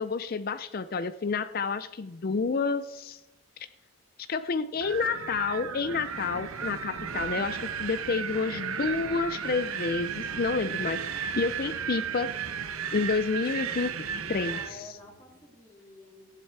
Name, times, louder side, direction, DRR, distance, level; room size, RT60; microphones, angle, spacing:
voice 1, 0.0-3.2 3.6-3.7 4.3-12.3 12.9-13.9 14.3-14.9, left 4 dB, 40° left, 13 dB, 0.4 m, -29 dB
Wind, 4.8-14.7, right 7 dB, 75° right, 0.9 m, -34 dB
Guitar, 8.2-15.5, equal, 5° right, 3.0 m, -58 dB
voice 2, 14.5-16.4, left 2 dB, 15° left, -3 dB, 2.5 m, -50 dB
15.0 x 10.0 x 4.7 m, 0.98 s
head